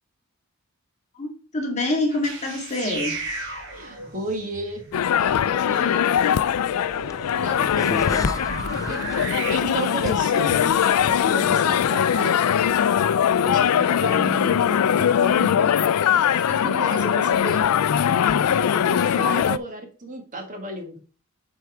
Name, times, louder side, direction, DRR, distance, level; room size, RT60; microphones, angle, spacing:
voice 1, 1.2-3.2, left 2 dB, 30° left, 2.0 m, -26 dB
sound 1, 2.1-9.6, right 2 dB, 60° right, 1.9 m, -35 dB
voice 2, 3.7-4.8 5.2-6.1 7.3-8.2 8.9-9.2 9.5-12.4 13.4-15.7 16.3-17.6 18.4-21.0, right 1 dB, 35° right, 1.7 m, -33 dB
sound 2, 4.9-19.6, left 8 dB, 90° left, 0.4 m, -21 dB
sound 3, 6.5-11.7, left 2 dB, 15° left, 0.6 m, -36 dB
8.2 x 4.5 x 4.8 m
head